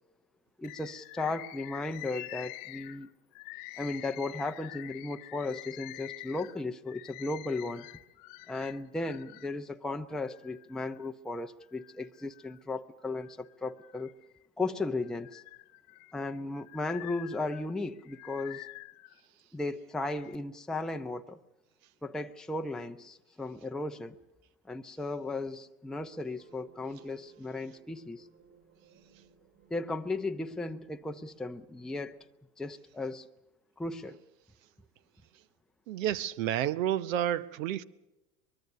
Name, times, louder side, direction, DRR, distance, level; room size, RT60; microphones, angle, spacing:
Bird, 0.6-9.5 10.1-11.1 11.6-12.6 13.0-14.4 14.9-19.2 19.9-20.4, left 23 dB, 50° left, 1.1 m, -47 dB
voice 1, 0.6-3.1 3.8-7.9 8.5-14.1 14.6-15.4 16.1-18.7 19.5-21.4 22.0-24.1 24.7-28.3 29.7-32.2 32.6-33.3 33.8-34.2, left 2 dB, ahead, 0.7 m, -36 dB
sound 1, 25.9-32.3, right 6 dB, 45° right, 5.4 m, -61 dB
voice 2, 35.9-37.8, right 11 dB, 65° right, 1.0 m, -30 dB
23.5 x 22.0 x 6.6 m
hypercardioid pair, 90°, 43 cm